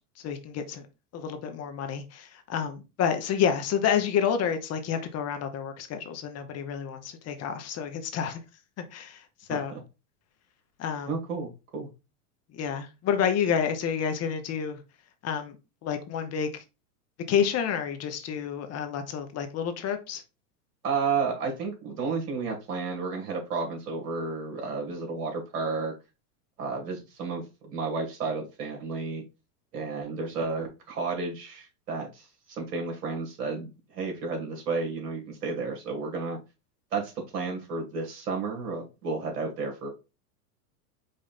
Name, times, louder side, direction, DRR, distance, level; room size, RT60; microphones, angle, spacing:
voice 1, 0.2-0.9 1.1-8.4 8.9-9.2 9.5-9.7 10.8-11.1 12.5-14.8 15.2-15.6 15.8-16.6 17.3-20.2, left 8 dB, 35° left, 0.8 m, -29 dB
voice 2, 9.5-9.8 11.1-11.9 20.8-25.9 26.6-29.2 29.7-36.4 36.9-39.9, right 4 dB, 85° right, 2.2 m, -32 dB
5.1 x 2.5 x 4.1 m
hypercardioid pair, 110°, 46 cm